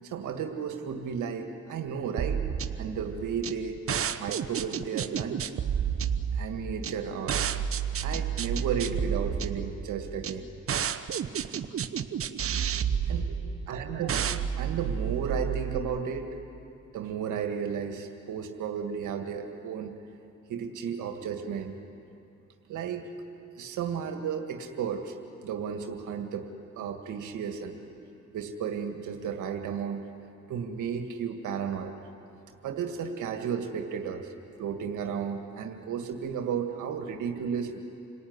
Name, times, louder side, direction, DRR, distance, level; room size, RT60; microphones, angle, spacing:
voice 1, 0.0-2.5 2.8-3.8 4.2-5.5 6.3-7.4 8.0-10.5 12.2-12.3 12.5-13.4 13.7-14.2 14.6-16.3 16.9-20.0 20.5-21.7 22.7-23.1 23.6-25.2 25.4-26.5 26.8-27.8 28.3-30.0 30.5-31.9 32.6-34.3 34.6-37.8, right 7 dB, 85° right, 5 dB, 1.9 m, -33 dB
sound 1, 2.2-15.8, right 8 dB, 45° right, 1.0 m, -31 dB
27.5 x 18.0 x 9.6 m, 2.7 s
cardioid pair, 90°, 30 cm